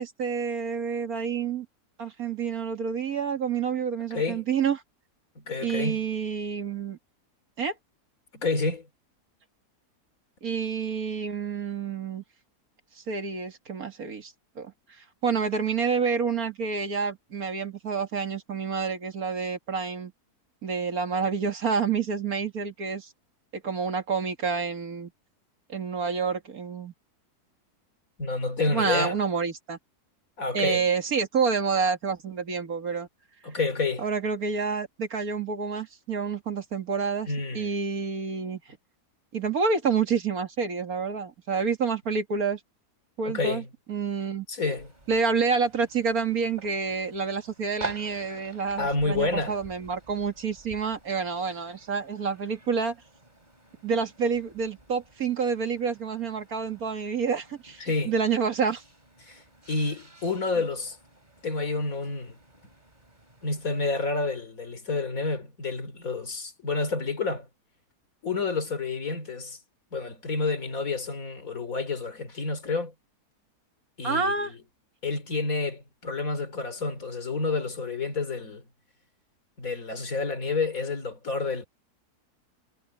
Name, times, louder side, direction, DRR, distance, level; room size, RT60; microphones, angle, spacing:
voice 1, 0.0-1.7 2.0-4.8 5.6-7.0 7.6-7.7 10.4-12.2 13.1-14.7 15.0-20.1 20.6-23.1 23.5-25.1 25.7-26.9 28.7-29.8 30.5-33.1 34.0-38.6 39.3-42.6 43.2-43.6 43.9-44.5 45.1-53.0 53.8-58.8 74.0-74.5, right 5 dB, 65° right, 2.4 m, -28 dB
voice 2, 4.1-4.4 5.3-6.1 8.3-8.9 28.2-29.2 30.4-30.8 33.4-34.1 37.3-37.7 43.3-43.7 44.5-44.9 48.8-49.6 57.8-58.1 59.2-61.0 61.4-62.4 63.4-67.5 68.2-69.6 69.9-72.9 74.0-74.5 75.0-78.7 79.6-81.7, left 3 dB, 60° left, 3.3 m, -29 dB
sound 1, 44.7-64.1, right 2 dB, 25° right, 3.8 m, -49 dB
omnidirectional pair, 1.7 m